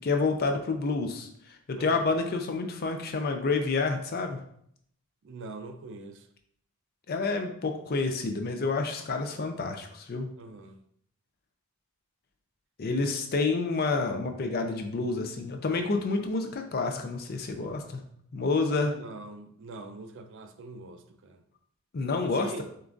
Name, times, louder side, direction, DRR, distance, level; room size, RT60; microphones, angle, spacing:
voice 1, 0.0-4.4 7.1-10.3 12.8-18.0 18.3-18.9 21.9-22.6, left 3 dB, 45° left, 0.5 m, -29 dB
voice 2, 5.2-6.3 10.4-10.8 18.8-21.4 22.2-22.6, right 2 dB, 55° right, 0.4 m, -43 dB
6.6 x 2.4 x 2.6 m
head